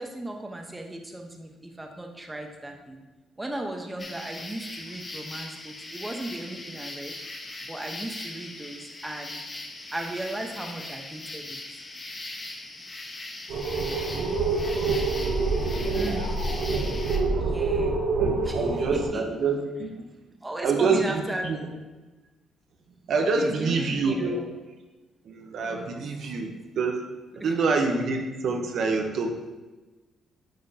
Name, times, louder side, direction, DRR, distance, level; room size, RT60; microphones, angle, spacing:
voice 1, 0.0-3.0 3.4-7.1 7.6-9.4 9.9-11.6 15.9-16.3 17.4-18.0 18.4-19.4 20.4-21.9 23.3-24.5 25.6-26.0 27.4-27.6, right 1 dB, 15° right, 2 dB, 0.9 m, -36 dB
sound 1, 4.0-17.2, left 2 dB, 30° left, 1.1 m, -40 dB
sound 2, 13.5-19.1, right 3 dB, 85° right, 1.1 m, -26 dB
voice 2, 13.8-14.4 15.7-16.7 18.2-19.9 20.6-21.6 23.1-24.4 25.3-27.0 27.4-29.4, right 4 dB, 65° right, 3 dB, 0.8 m, -27 dB
9.0 x 5.0 x 2.8 m, 1.2 s
cardioid pair, 90°, 0 cm